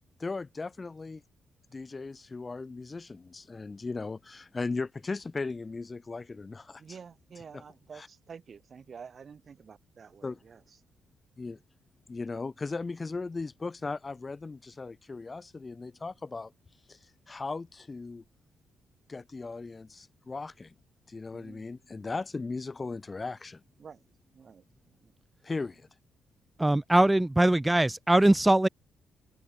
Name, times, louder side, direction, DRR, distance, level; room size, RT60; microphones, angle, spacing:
voice 1, 0.2-1.2 1.7-7.0 7.5-7.6 7.9-8.1 10.2-10.4 11.4-11.6 12.1-16.5 16.9-17.0 17.3-18.2 19.1-20.7 21.1-23.6 25.4-25.9, left 3 dB, 30° left, 2.3 m, -37 dB
voice 2, 6.8-10.6 21.3-21.7 23.8-24.0 24.3-24.6 25.0-25.1, right 6 dB, 50° right, 4.9 m, -49 dB
voice 3, 26.6-28.7, right 1 dB, 15° right, 0.6 m, -22 dB
hypercardioid pair, 40°, 0 cm